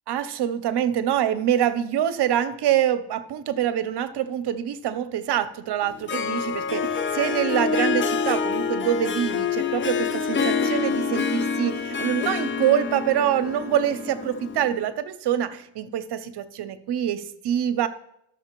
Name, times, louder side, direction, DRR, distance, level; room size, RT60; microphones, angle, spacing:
voice 1, 0.1-17.9, right 10 dB, 60° right, 13 dB, 0.7 m, -25 dB
Harp, 5.8-14.8, left 5 dB, 30° left, 0.4 m, -27 dB
14.0 x 6.2 x 3.0 m, 0.79 s
cardioid pair, 155°, 46 cm